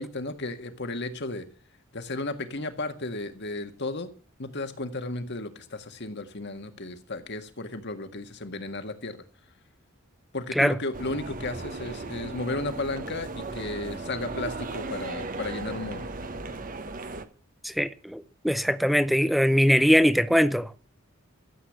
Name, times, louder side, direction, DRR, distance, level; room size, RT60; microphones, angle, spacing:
voice 1, 0.0-1.4 1.9-4.1 4.4-9.2 10.3-16.1, left 2 dB, 55° left, 1.7 m, -34 dB
sound 1, 10.9-17.2, right 3 dB, 40° right, 1.1 m, -36 dB
voice 2, 17.6-20.7, equal, ahead, 0.6 m, -22 dB
14.0 x 8.2 x 7.9 m
head